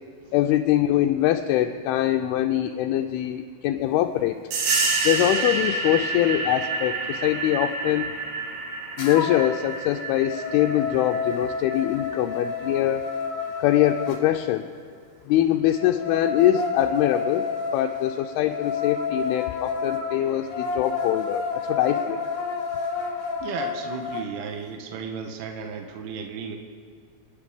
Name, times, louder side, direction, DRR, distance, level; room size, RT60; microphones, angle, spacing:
voice 1, 0.3-4.4 5.0-8.1 9.0-13.0 13.6-14.7 15.3-17.5 17.7-22.2, left 13 dB, 85° left, 4 dB, 2.4 m, -23 dB
sound 1, 4.5-12.8, right 4 dB, 65° right, 3.0 m, -29 dB
sound 2, 9.0-9.6 10.0-14.2 15.7-24.3, left 5 dB, 60° left, 2.2 m, -30 dB
voice 2, 23.4-26.6, right 6 dB, 80° right, 4 dB, 3.0 m, -34 dB
28.5 x 9.7 x 3.5 m, 2.1 s
omnidirectional pair, 4.7 m